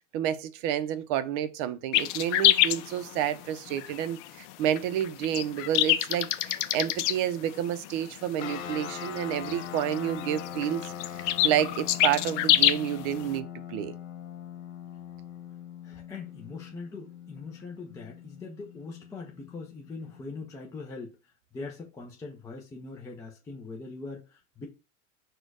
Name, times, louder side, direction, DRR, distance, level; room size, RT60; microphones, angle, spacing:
voice 1, 0.1-10.8 11.2-13.9, right 10 dB, 45° right, 0.5 m, -30 dB
sound 1, 1.9-13.4, left 13 dB, 65° left, 0.5 m, -27 dB
sound 2, 8.4-20.2, left 9 dB, 80° left, 1.0 m, -41 dB
voice 2, 15.8-21.2 21.5-24.7, left 4 dB, 10° left, 0.4 m, -41 dB
4.3 x 2.2 x 4.7 m
supercardioid pair, 140°, 39 cm